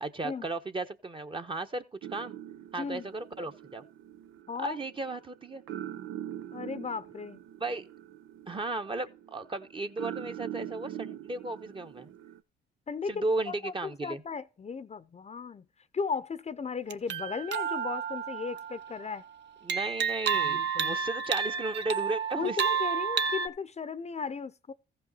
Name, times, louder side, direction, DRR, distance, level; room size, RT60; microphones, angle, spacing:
voice 1, 0.0-2.4 2.7-3.8 4.6-5.6 7.6-7.9 8.5-12.1 13.1-14.2 19.6-22.6, right 2 dB, 25° right, 1.1 m, -35 dB
sound 1, 2.0-12.4, right 11 dB, 85° right, 0.8 m, -43 dB
voice 2, 4.5-4.8 6.5-7.4 12.9-13.7 14.0-15.7 15.9-19.2 20.3-21.0 22.3-24.7, left 5 dB, 35° left, 0.7 m, -36 dB
sound 2, 16.9-19.1 19.7-23.5, right 7 dB, 65° right, 1.0 m, -31 dB
15.0 x 5.5 x 4.1 m
cardioid pair, 90°, 20 cm